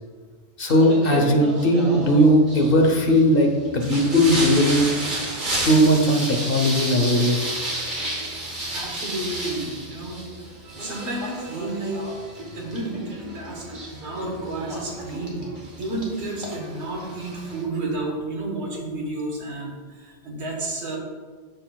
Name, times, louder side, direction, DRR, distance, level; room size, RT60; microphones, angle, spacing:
voice 1, 0.6-4.9 5.6-7.7, equal, 55° left, 2 dB, 1.1 m, -18 dB
Singing, 0.7-17.6, right 1 dB, 45° right, 1.4 m, -32 dB
voice 2, 8.7-10.3 10.8-12.1 12.5-13.7 13.9-15.4 15.8-21.0, right 2 dB, 75° right, -1 dB, 1.6 m, -31 dB
12.0 x 4.2 x 2.3 m, 1.5 s
omnidirectional pair, 1.2 m